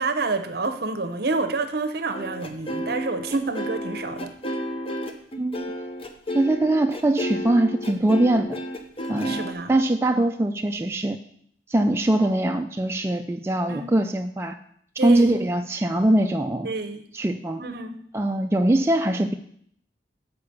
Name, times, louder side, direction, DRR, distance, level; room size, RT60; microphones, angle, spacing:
voice 1, 0.0-4.3 9.2-9.7 10.1-10.3 13.7-13.9 15.0-15.3 16.6-17.1 17.6-18.0, right 3 dB, 60° right, 9 dB, 0.8 m, -28 dB
sound 1, 2.1-9.5, equal, 30° left, 0.7 m, -31 dB
voice 2, 5.4-5.7 6.3-8.6 9.1-11.2 11.7-14.6 15.0-16.7 17.1-17.6 18.1-19.3, right 1 dB, 15° right, 5 dB, 0.3 m, -22 dB
6.8 x 4.8 x 6.8 m, 0.65 s
head